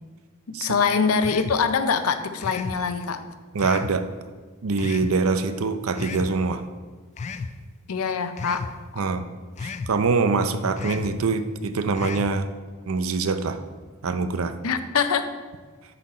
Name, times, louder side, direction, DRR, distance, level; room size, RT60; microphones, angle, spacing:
voice 1, 0.5-3.2 7.9-8.6 14.6-15.3, left 5 dB, 85° left, 9 dB, 0.6 m, -24 dB
sound 1, 1.2-1.6 2.4-2.8 3.6-4.0 4.8-5.2 5.9-6.3 7.2-7.5 8.4-8.7 9.6-9.9 10.8-11.1 11.9-12.3, left 5 dB, 30° left, 0.3 m, -33 dB
voice 2, 3.5-4.1 4.6-6.6 9.0-9.3 9.6-12.5 12.9-13.6 14.0-14.5, right 4 dB, 70° right, 10 dB, 0.5 m, -24 dB
10.0 x 4.1 x 4.2 m, 1.4 s
head